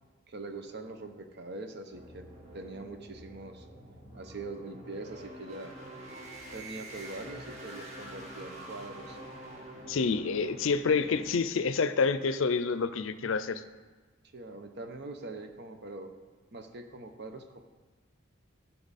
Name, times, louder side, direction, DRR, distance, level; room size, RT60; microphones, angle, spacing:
voice 1, 0.3-2.3 2.5-3.7 4.1-5.7 6.5-9.2 14.3-16.1 16.5-17.6, right 2 dB, 55° right, 6 dB, 0.9 m, -43 dB
sound 1, 1.9-11.4, right 1 dB, 35° right, 1.8 m, -46 dB
voice 2, 9.9-13.6, left 5 dB, 70° left, 13 dB, 0.5 m, -28 dB
15.5 x 5.8 x 4.1 m, 1.3 s
head